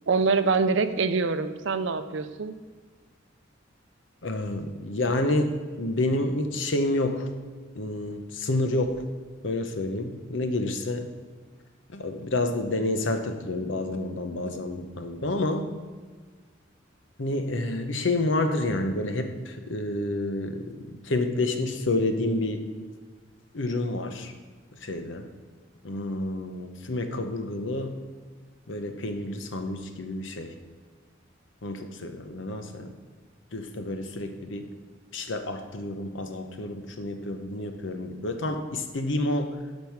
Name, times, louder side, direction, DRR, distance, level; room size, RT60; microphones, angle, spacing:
voice 1, 0.1-2.5, right 4 dB, 70° right, 11 dB, 0.6 m, -25 dB
voice 2, 4.2-7.3 7.7-9.0 9.4-11.1 11.9-15.7 17.2-22.6 23.5-24.3 24.7-25.3 25.8-28.0 28.7-30.6 31.6-32.9 33.5-34.7 35.1-39.6, left 2 dB, 70° left, 7 dB, 0.9 m, -29 dB
11.5 x 5.4 x 4.7 m, 1.5 s
head